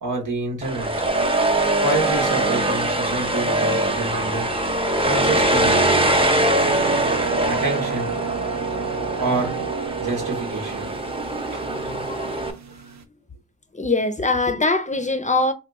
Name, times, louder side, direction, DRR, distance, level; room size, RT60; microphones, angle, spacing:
voice 1, 0.0-1.1 1.8-4.5 5.0-5.8 7.4-8.2 9.2-9.6 10.0-10.9 11.5-11.6, right 3 dB, 85° right, 1.0 m, -27 dB
sound 1, 0.6-12.5, right 1 dB, 20° right, 0.6 m, -22 dB
voice 2, 4.7-5.1 11.8-12.3 13.7-15.5, left 3 dB, 25° left, 0.4 m, -23 dB
sound 2, 6.6-13.0, right 7 dB, 65° right, 0.5 m, -32 dB
2.9 x 2.1 x 3.5 m
cardioid pair, 40°, 30 cm